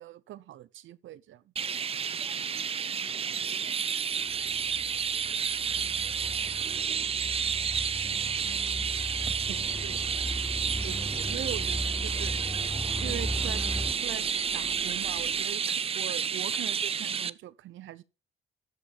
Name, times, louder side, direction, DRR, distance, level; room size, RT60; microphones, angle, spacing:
voice 1, 0.0-1.5 9.5-10.0 10.8-12.3 13.0-13.6 13.9-18.0, right 13 dB, 75° right, 0.8 m, -41 dB
Chirp tweet, 1.6-17.3, right 7 dB, 30° right, 0.4 m, -31 dB
voice 2, 2.5-4.7 5.1-9.0 9.8-10.2, left 3 dB, 70° left, 5.6 m, -61 dB
sound 1, 4.3-13.9, equal, 5° left, 0.7 m, -37 dB
sound 2, 9.5-15.5, left 2 dB, 30° left, 5.0 m, -47 dB
13.5 x 5.2 x 5.6 m
cardioid pair, 90°, 20 cm